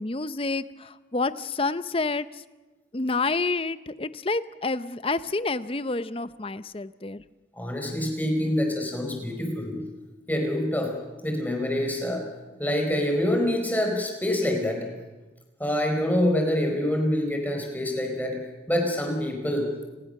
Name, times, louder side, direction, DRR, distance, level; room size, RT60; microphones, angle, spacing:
voice 1, 0.0-2.4 2.9-7.2, left 3 dB, 30° left, 14 dB, 0.7 m, -29 dB
voice 2, 7.5-9.8 10.3-11.0 11.2-12.2 12.6-14.9 15.6-18.4 18.7-19.7, left 1 dB, 10° left, 2 dB, 4.4 m, -26 dB
30.0 x 19.5 x 6.6 m, 1.2 s
head